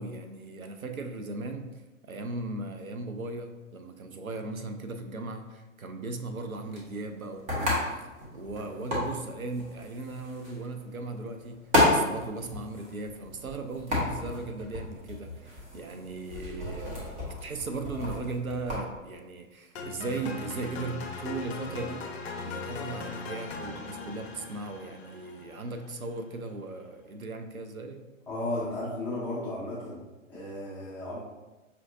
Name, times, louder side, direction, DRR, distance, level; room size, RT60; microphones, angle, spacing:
voice 1, 0.0-1.7 2.0-8.1 8.3-22.1 22.4-28.1, right 3 dB, 85° right, 6 dB, 0.6 m, -37 dB
sound 1, 6.3-18.8, left 1 dB, 15° right, 0.9 m, -32 dB
sound 2, 19.8-25.9, left 4 dB, 50° left, 0.6 m, -39 dB
voice 2, 28.3-30.0 30.3-31.2, left 1 dB, 5° left, -11 dB, 0.4 m, -34 dB
5.5 x 2.6 x 2.6 m, 1.1 s
figure-of-eight pair, 115°, 41 cm